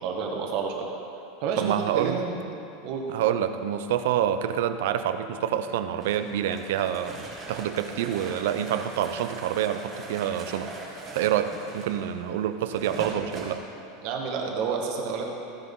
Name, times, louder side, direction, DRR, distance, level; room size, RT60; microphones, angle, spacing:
voice 1, 0.0-0.9 1.4-2.4 2.8-3.0 14.0-15.3, right 5 dB, 45° right, 1 dB, 1.5 m, -29 dB
voice 2, 1.6-2.2 3.1-10.7 11.1-13.6, right 10 dB, 70° right, 10 dB, 0.6 m, -27 dB
sound 1, 6.0-13.6, right 2 dB, 20° right, 2.0 m, -41 dB
15.0 x 9.6 x 3.8 m, 2.7 s
supercardioid pair, 170°, 0 cm